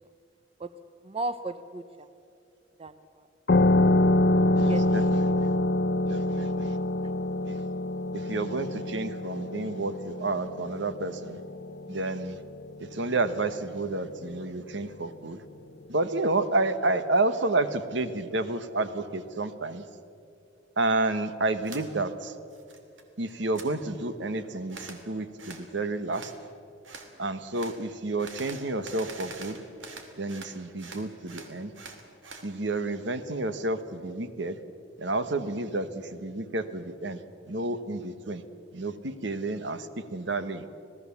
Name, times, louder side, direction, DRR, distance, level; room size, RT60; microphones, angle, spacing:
voice 1, 1.0-2.1 2.8-3.3 4.7-4.8 6.7-6.8, right 2 dB, 30° right, 11 dB, 0.6 m, -36 dB
sound 1, 3.5-12.7, left 2 dB, 55° left, 0.7 m, -26 dB
voice 2, 4.6-5.5 6.1-6.8 7.4-7.6 8.1-11.4 11.9-12.4 12.8-15.4 15.9-19.9 20.8-22.3 23.2-26.3 27.2-29.6 30.2-31.7 32.4-34.6 35.0-38.4 38.7-40.7, right 2 dB, 65° right, 11 dB, 1.2 m, -30 dB
sound 2, 21.6-21.8 22.3-23.0 23.3-23.7 24.7-25.0 25.4-25.7 26.1-26.4 26.8-27.1 27.5-27.8 28.2-30.5 30.8-32.5, right 4 dB, 85° right, 2.7 m, -44 dB
26.5 x 18.0 x 7.2 m, 2.6 s
head